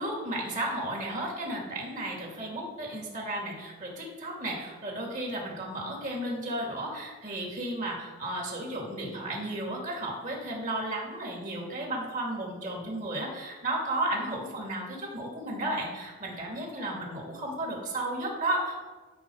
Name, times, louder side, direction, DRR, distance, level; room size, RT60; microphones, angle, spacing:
voice 1, 0.0-18.8, right 1 dB, 35° right, -2 dB, 2.8 m, -33 dB
13.0 x 4.4 x 6.5 m, 1.3 s
head